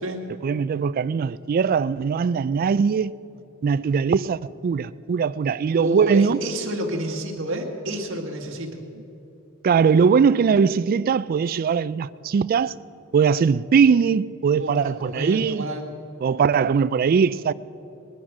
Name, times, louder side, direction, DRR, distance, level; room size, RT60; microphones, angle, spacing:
voice 1, 0.4-3.1 3.6-6.4 9.6-12.7 13.1-15.7 16.2-17.5, right 6 dB, 45° right, 0.3 m, -20 dB
voice 2, 5.7-8.8 14.6-15.9, right 1 dB, 65° right, 1.8 m, -29 dB
20.0 x 10.0 x 6.1 m
head